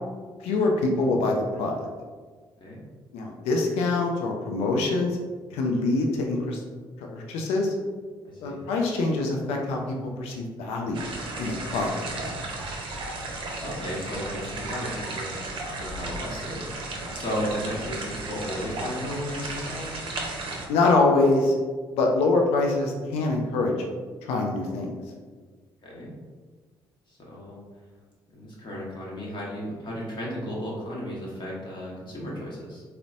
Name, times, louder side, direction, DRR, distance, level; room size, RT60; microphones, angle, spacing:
voice 1, 0.4-1.8 3.1-5.2 5.5-6.6 7.1-7.7 8.4-11.0 11.4-11.9 20.7-21.5 22.0-23.7 24.3-24.9, left 3 dB, 65° left, 1 dB, 0.5 m, -24 dB
voice 2, 8.3-8.6 11.9-12.1 13.6-15.4 15.8-16.7 17.1-19.8 25.8-26.1 27.1-27.6 28.3-32.8, equal, 45° left, -4 dB, 1.0 m, -34 dB
sound 1, 10.9-20.7, right 2 dB, 50° right, 0.6 m, -34 dB
3.9 x 2.1 x 2.5 m, 1.4 s
hypercardioid pair, 45°, 11 cm